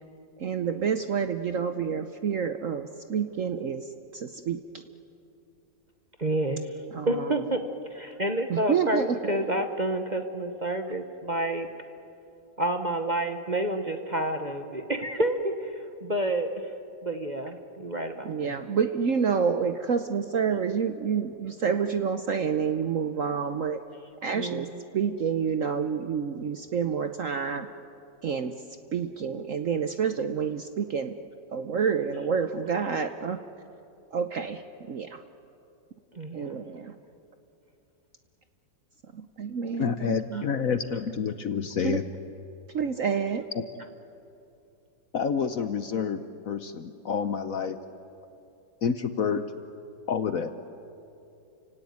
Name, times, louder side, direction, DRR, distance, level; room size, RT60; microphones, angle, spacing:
voice 1, 0.4-4.6 6.9-7.4 8.5-9.6 18.3-23.8 24.2-24.7 24.9-27.7 28.2-28.5 28.9-31.1 31.5-33.4 34.1-34.6 34.9-35.2 36.3-36.9 39.1-40.4 41.8-42.0 42.7-43.5, right 6 dB, 55° right, 8 dB, 0.9 m, -28 dB
voice 2, 6.2-6.7 7.1-11.7 12.6-16.7 17.0-18.6 24.3-24.8 36.1-36.6 40.3-40.4, right 1 dB, 30° right, 6 dB, 0.9 m, -29 dB
voice 3, 39.8-42.0 43.5-43.6 45.1-46.2 46.5-47.8 48.8-49.5 50.1-50.5, left 6 dB, 55° left, 10 dB, 1.0 m, -28 dB
29.5 x 17.0 x 9.5 m, 2.7 s
omnidirectional pair, 2.1 m